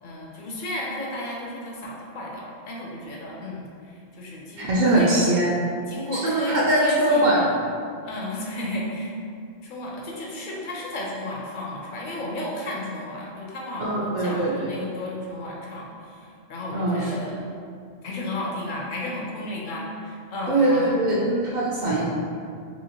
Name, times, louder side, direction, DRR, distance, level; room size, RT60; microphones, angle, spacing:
voice 1, 0.0-5.3 5.9-7.4 8.0-9.1 9.6-17.4 18.0-20.9, left 1 dB, 55° left, -3 dB, 0.6 m, -33 dB
voice 2, 4.6-5.5 6.1-7.4 13.8-14.5 16.7-17.1 20.5-22.0, right 1 dB, 55° right, -5 dB, 0.5 m, -21 dB
2.8 x 2.7 x 2.8 m, 2.3 s
omnidirectional pair, 1.2 m